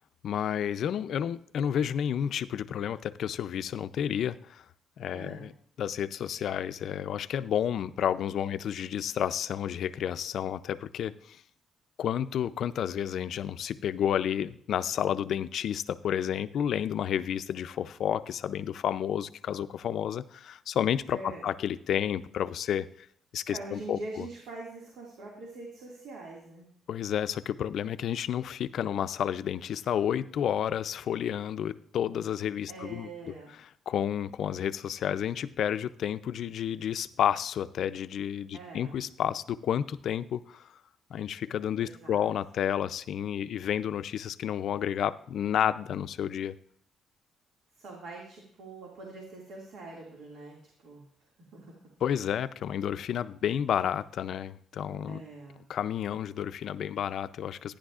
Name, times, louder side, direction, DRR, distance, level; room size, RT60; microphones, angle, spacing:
voice 1, 0.2-4.6 5.0-5.5 5.8-11.4 12.0-22.9 23.3-24.2 26.9-33.1 33.9-40.7 41.1-46.5 52.0-55.2 55.7-57.8, left 9 dB, 60° left, 14 dB, 0.4 m, -31 dB
voice 2, 5.1-5.5 21.1-21.4 23.5-26.7 32.7-33.6 38.5-39.0 41.8-42.2 47.8-51.0 51.5-51.8 55.1-55.6, right 2 dB, 70° right, -2 dB, 2.1 m, -44 dB
14.0 x 10.0 x 2.4 m, 0.63 s
cardioid pair, 130°, 0 cm